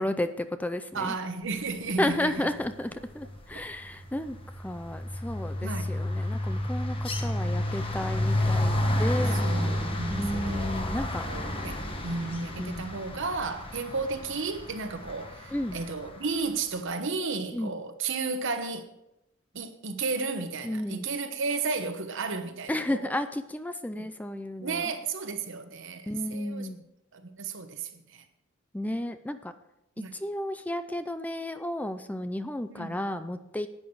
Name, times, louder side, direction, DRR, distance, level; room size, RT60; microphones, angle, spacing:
voice 1, 0.0-1.1 2.0-9.3 10.1-11.2 12.6-12.9 15.5-15.8 17.5-17.7 20.6-21.1 22.7-24.9 26.1-26.8 28.7-29.5 30.1-33.7, left 1 dB, 10° left, 0.4 m, -32 dB
voice 2, 0.9-2.5 5.6-6.0 9.4-10.8 11.3-18.9 19.5-23.1 23.9-24.1 24.6-26.7 27.1-28.2 30.0-30.1 32.7-33.0, right 4 dB, 65° right, 1.1 m, -33 dB
sound 1, 2.4-2.8 3.0-16.2, left 1 dB, 25° left, 1.3 m, -31 dB
10.5 x 9.3 x 4.7 m
head